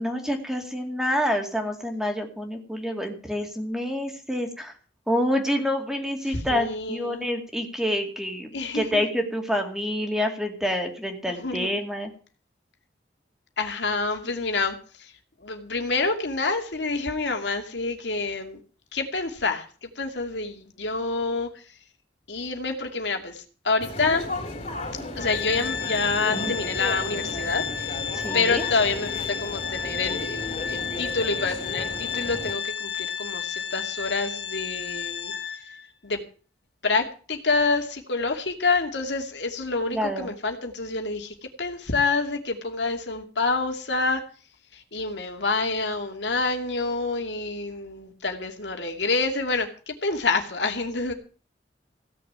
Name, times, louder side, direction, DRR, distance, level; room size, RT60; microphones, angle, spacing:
voice 1, 0.0-4.7 5.1-8.5 8.7-12.1 28.1-28.6 39.9-40.3, equal, 5° right, 4 dB, 2.3 m, -27 dB
voice 2, 6.3-7.3 8.5-9.0 11.3-11.7 13.6-15.1 15.4-18.6 18.9-21.5 22.3-24.2 25.2-28.0 28.3-35.3 36.0-36.2 36.8-44.2 44.7-51.1, left 3 dB, 85° left, 5 dB, 2.5 m, -27 dB
sound 1, 23.8-32.5, left 2 dB, 40° left, 3.8 m, -34 dB
Organ, 25.2-35.9, left 7 dB, 60° left, 1.5 m, -32 dB
16.5 x 6.8 x 8.8 m, 0.39 s
head